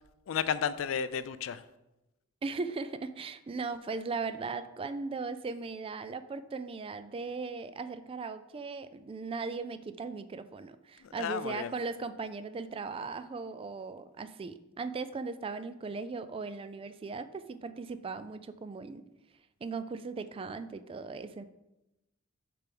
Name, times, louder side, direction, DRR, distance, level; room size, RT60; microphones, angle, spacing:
voice 1, 0.3-1.6 11.0-11.7, left 7 dB, 70° left, 14 dB, 0.4 m, -33 dB
voice 2, 2.4-19.0 19.6-21.4, right 4 dB, 25° right, 12 dB, 0.3 m, -38 dB
6.8 x 3.4 x 5.9 m, 0.96 s
head